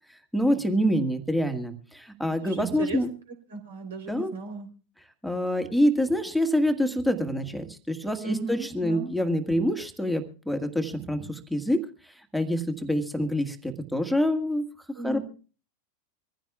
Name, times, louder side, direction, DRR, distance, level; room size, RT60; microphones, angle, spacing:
voice 1, 0.3-3.1 4.1-4.3 5.2-11.8 12.3-14.6 15.0-15.2, equal, ahead, 6 dB, 1.6 m, -26 dB
voice 2, 2.4-3.0 3.5-4.7 8.2-9.1 15.0-15.2, right 3 dB, 65° right, 6 dB, 3.6 m, -35 dB
24.5 x 15.0 x 2.3 m, 0.37 s
figure-of-eight pair, 90°, 0 cm